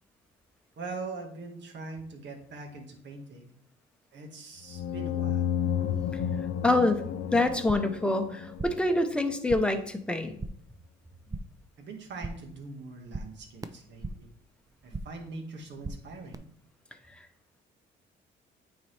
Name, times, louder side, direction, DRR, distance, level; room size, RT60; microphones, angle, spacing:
voice 1, 0.8-3.5 4.1-5.5 11.8-14.3 14.8-16.4, right 3 dB, 65° right, 3 dB, 1.6 m, -42 dB
sound 1, 4.7-9.2, left 9 dB, 65° left, 0.5 m, -32 dB
voice 2, 6.6-10.4, left 2 dB, 5° left, 6 dB, 0.8 m, -26 dB
sound 2, 7.6-8.0 8.3-8.9 9.2-9.8 10.1-10.7 11.0-11.7 12.0-12.6 12.8-14.4 14.6-15.3 15.5-16.3, right 3 dB, 20° right, 0.5 m, -41 dB
9.2 x 4.2 x 3.3 m, 0.65 s
cardioid pair, 90°, 20 cm